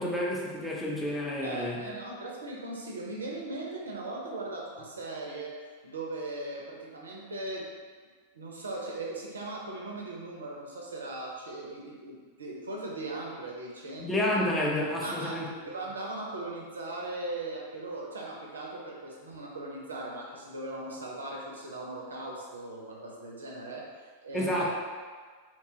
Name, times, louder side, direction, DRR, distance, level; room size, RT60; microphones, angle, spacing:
voice 1, 0.0-1.8 14.0-15.5 24.3-24.7, left 1 dB, 10° left, -4 dB, 0.5 m, -29 dB
voice 2, 1.4-5.6 5.8-7.7 8.3-14.1 15.0-24.7, right 2 dB, 70° right, -2 dB, 0.5 m, -39 dB
2.8 x 2.2 x 2.7 m, 1.5 s
figure-of-eight pair, 90°, 0 cm